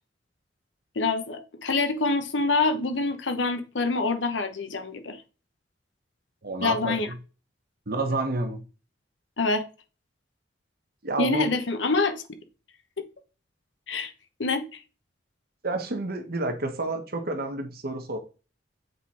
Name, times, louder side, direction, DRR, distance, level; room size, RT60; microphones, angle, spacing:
voice 1, 1.0-5.2 6.6-7.1 9.4-9.6 11.2-12.2 13.9-14.1 14.4-14.8, left 3 dB, 80° left, 1.1 m, -26 dB
voice 2, 6.4-7.2 7.9-8.6 11.0-11.5 15.6-18.2, right 2 dB, 55° right, 1.2 m, -29 dB
8.0 x 3.8 x 4.3 m
head